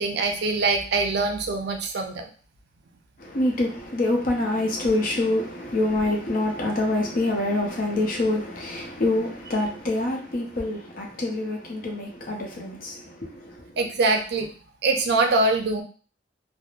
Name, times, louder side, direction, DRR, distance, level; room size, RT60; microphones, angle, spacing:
voice 1, 0.0-2.2 13.8-14.5 14.8-15.8, right 3 dB, 60° right, 0.4 m, -23 dB
voice 2, 3.2-13.7, left 2 dB, 50° left, 0.6 m, -26 dB
3.0 x 2.0 x 2.4 m
head